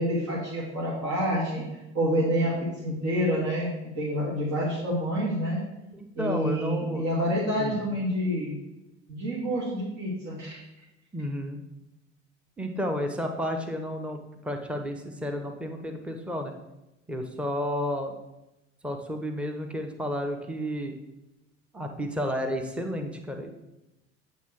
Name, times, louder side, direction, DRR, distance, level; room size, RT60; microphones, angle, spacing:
voice 1, 0.0-1.6 1.9-3.7 4.0-5.6 6.2-8.6 9.1-10.6, equal, 55° right, -6 dB, 2.4 m, -28 dB
voice 2, 5.9-7.0 7.6-7.8 11.1-11.6 12.6-16.5 17.1-18.2 18.8-20.9 21.7-23.5, equal, 5° right, 4 dB, 1.0 m, -31 dB
8.3 x 3.8 x 6.0 m, 0.95 s
figure-of-eight pair, 60°, 34 cm